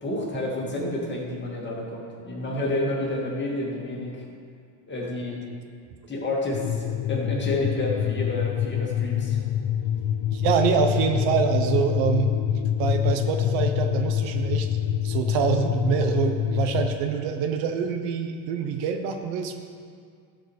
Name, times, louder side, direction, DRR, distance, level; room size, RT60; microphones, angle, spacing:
voice 1, 0.0-4.2 4.9-5.4 6.1-9.4, left 1 dB, 25° left, -3 dB, 2.4 m, -29 dB
sound 1, 6.5-17.0, left 10 dB, 45° left, 0.4 m, -26 dB
voice 2, 10.3-12.4 12.8-14.7 15.0-19.6, right 7 dB, 70° right, 6 dB, 1.0 m, -25 dB
12.5 x 5.0 x 6.6 m, 2.2 s
cardioid pair, 120°, 44 cm